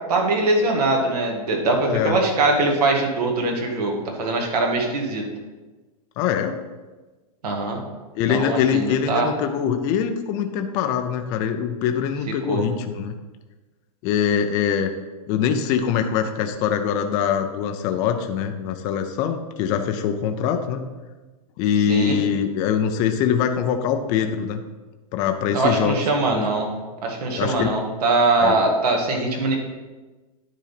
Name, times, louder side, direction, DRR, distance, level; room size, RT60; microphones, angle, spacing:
voice 1, 0.1-5.2 7.4-7.8 8.3-9.3 12.5-12.6 21.9-22.2 25.5-26.7 27.0-29.6, right 2 dB, 85° right, 1 dB, 2.1 m, -22 dB
voice 2, 1.9-2.2 6.2-6.6 8.1-13.1 14.0-14.9 15.3-20.8 21.6-24.6 25.1-26.0 26.3-26.4 27.4-27.7 28.4-28.6, left 8 dB, 20° left, 6 dB, 0.3 m, -23 dB
10.0 x 3.8 x 5.8 m, 1.2 s
supercardioid pair, 165°, 19 cm